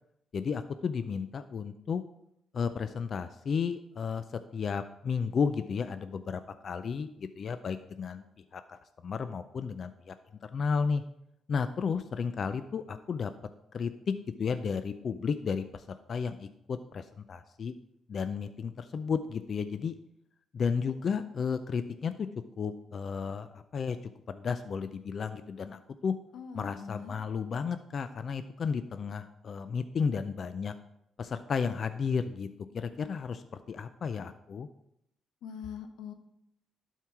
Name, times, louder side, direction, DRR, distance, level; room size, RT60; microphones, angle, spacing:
voice 1, 0.3-2.0 2.5-8.2 8.5-10.1 10.4-11.0 11.5-13.3 13.7-17.7 18.1-20.0 20.5-22.3 22.6-24.0 24.3-26.1 26.5-30.7 31.2-32.5 32.7-34.7, left 6 dB, 50° left, 11 dB, 0.4 m, -33 dB
voice 2, 26.3-27.2 35.4-36.1, left 6 dB, 85° left, 7 dB, 1.0 m, -42 dB
11.5 x 4.6 x 4.6 m, 0.79 s
cardioid pair, 90°, 0 cm